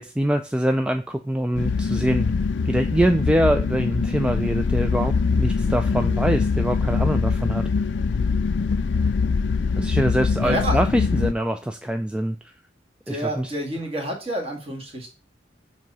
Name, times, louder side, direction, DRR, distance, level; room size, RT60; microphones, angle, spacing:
voice 1, 0.0-2.3 2.7-7.6 9.8-12.4 13.1-13.5, right 1 dB, 5° right, 6 dB, 0.3 m, -24 dB
sound 1, 1.5-11.3, left 5 dB, 80° left, 0.4 m, -23 dB
voice 2, 10.4-10.8 13.1-15.1, right 1 dB, 35° right, 1 dB, 1.7 m, -28 dB
7.5 x 2.8 x 5.3 m, 0.33 s
head